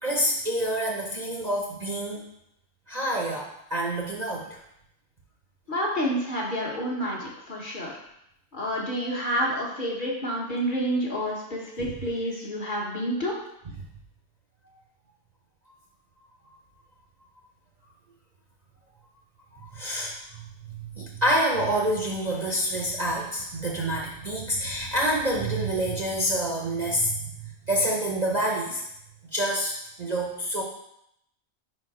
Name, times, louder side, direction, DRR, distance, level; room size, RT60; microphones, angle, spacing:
voice 1, 0.0-2.2 2.9-4.6 11.8-11.9 13.7-13.9 19.5-28.8 29.3-29.7 30.0-30.6, right 1 dB, 35° right, -3 dB, 0.8 m, -27 dB
voice 2, 5.7-7.9 8.5-13.3, equal, 40° left, -3 dB, 1.3 m, -29 dB
5.1 x 4.4 x 4.9 m, 0.78 s
omnidirectional pair, 1.4 m